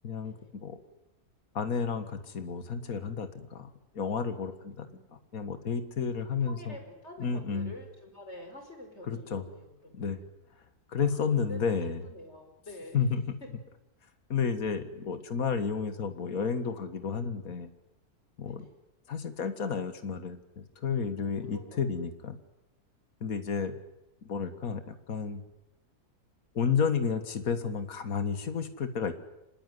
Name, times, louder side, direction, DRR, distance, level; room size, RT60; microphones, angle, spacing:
voice 1, 0.0-0.8 1.5-6.8 7.2-7.7 9.1-9.4 9.9-10.2 10.9-12.0 12.9-13.4 14.3-17.7 18.4-18.7 19.1-22.4 23.2-23.8 24.3-25.4 26.6-29.1, left 6 dB, 65° left, 10 dB, 2.1 m, -31 dB
voice 2, 6.1-10.2 11.0-13.0 18.4-18.7 21.2-21.9, left 1 dB, 45° left, 4 dB, 5.5 m, -48 dB
26.0 x 20.0 x 9.6 m, 0.90 s
omnidirectional pair, 1.6 m